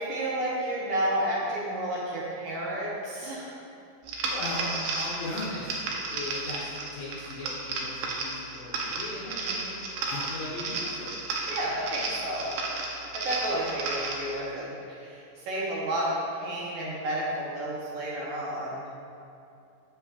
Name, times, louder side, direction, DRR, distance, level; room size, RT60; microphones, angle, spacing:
voice 1, 0.0-3.6 9.2-9.7 11.5-12.6 13.1-18.9, right 1 dB, 70° right, -6 dB, 2.1 m, -31 dB
sound 1, 4.1-14.3, right 3 dB, 85° right, 2.5 m, -33 dB
voice 2, 4.3-5.7 6.1-9.3 10.1-11.1, left 2 dB, 70° left, -6 dB, 1.8 m, -37 dB
7.9 x 7.0 x 2.4 m, 2.6 s
omnidirectional pair, 4.0 m